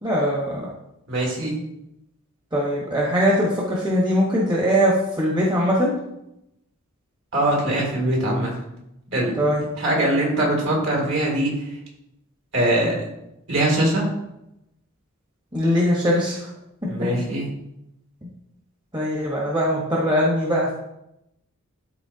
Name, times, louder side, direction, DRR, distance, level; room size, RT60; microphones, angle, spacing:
voice 1, 0.0-0.7 2.5-5.9 9.4-9.6 15.5-16.4 18.9-20.7, equal, 20° right, -4 dB, 1.2 m, -21 dB
voice 2, 1.1-1.5 7.3-8.5 9.1-9.3 9.8-11.5 12.5-12.9 13.5-14.0 16.9-17.5, right 1 dB, 60° right, -2 dB, 2.6 m, -22 dB
12.5 x 4.2 x 2.8 m, 0.85 s
head